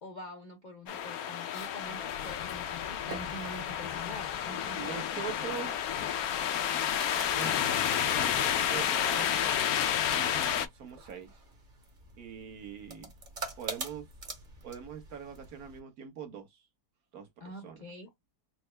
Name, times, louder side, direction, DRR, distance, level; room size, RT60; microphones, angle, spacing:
voice 1, 0.0-5.0 17.4-18.1, left 1 dB, 50° left, 0.5 m, -45 dB
sound 1, 0.9-10.7, left 9 dB, 70° left, 1.0 m, -30 dB
sound 2, 2.7-15.8, right 3 dB, 35° right, 1.0 m, -47 dB
voice 2, 4.8-6.2 7.3-7.6 8.1-9.4 10.0-11.4 12.2-13.1 13.6-14.1 14.6-16.6 17.1-17.8, right 7 dB, 65° right, 1.5 m, -43 dB
4.3 x 2.1 x 3.2 m
omnidirectional pair, 1.7 m